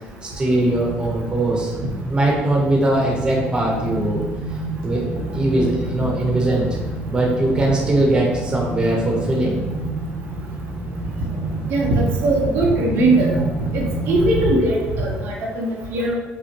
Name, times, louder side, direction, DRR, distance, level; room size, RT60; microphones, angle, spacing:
voice 1, 0.2-1.7 2.0-4.2 4.8-5.0 5.3-6.7 7.1-9.6, right 1 dB, 20° right, -2 dB, 0.9 m, -20 dB
sound 1, 0.6-14.5, right 2 dB, 85° left, 1.2 m, -29 dB
voice 2, 11.7-13.3 13.7-16.1, right 2 dB, 70° right, -2 dB, 0.8 m, -20 dB
5.2 x 2.1 x 2.9 m, 1.1 s
cardioid pair, 120°, 4 cm